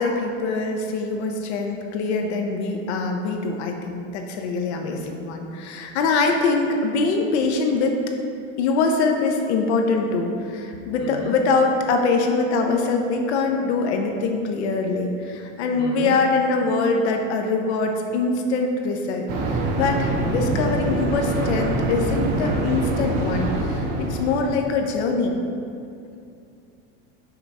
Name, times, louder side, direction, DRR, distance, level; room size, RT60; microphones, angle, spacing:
voice 1, 0.0-8.0 8.6-25.4, left 3 dB, 80° left, 3 dB, 0.8 m, -23 dB
voice 2, 11.0-11.3 15.8-16.2, left 1 dB, 40° left, 0 dB, 0.8 m, -34 dB
sound 1, 19.3-24.7, right 2 dB, 35° right, 0.7 m, -25 dB
5.9 x 5.4 x 4.7 m, 2.5 s
supercardioid pair, 180°, 33 cm